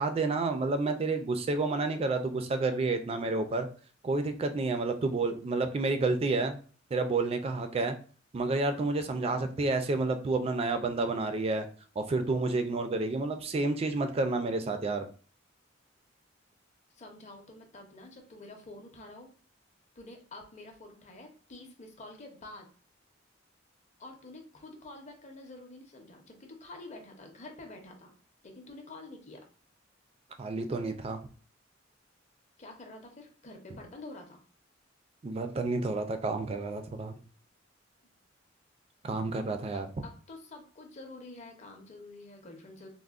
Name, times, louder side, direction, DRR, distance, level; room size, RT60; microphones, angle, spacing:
voice 1, 0.0-3.7 4.0-6.6 6.9-7.9 8.3-11.7 12.0-15.1 30.4-31.2 35.2-37.2 39.0-39.9, right 3 dB, 30° right, 8 dB, 0.3 m, -30 dB
voice 2, 16.9-19.3 20.0-22.7 24.0-28.1 28.4-29.4 32.6-34.4 40.0-42.9, left 2 dB, 35° left, 3 dB, 0.6 m, -48 dB
3.5 x 2.0 x 2.3 m, 0.41 s
head